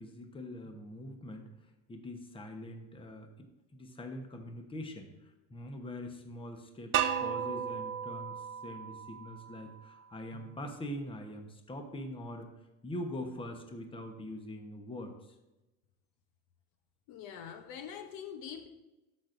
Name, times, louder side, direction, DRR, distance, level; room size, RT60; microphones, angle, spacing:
voice 1, 0.0-1.5 1.9-12.5 12.8-15.3, left 1 dB, 10° left, 4 dB, 1.0 m, -43 dB
sound 1, 6.9-9.8, right 9 dB, 30° right, 0.6 m, -35 dB
voice 2, 17.1-18.7, left 8 dB, 55° left, 7 dB, 0.9 m, -44 dB
12.5 x 6.1 x 2.6 m, 1.0 s
supercardioid pair, 115°, 42 cm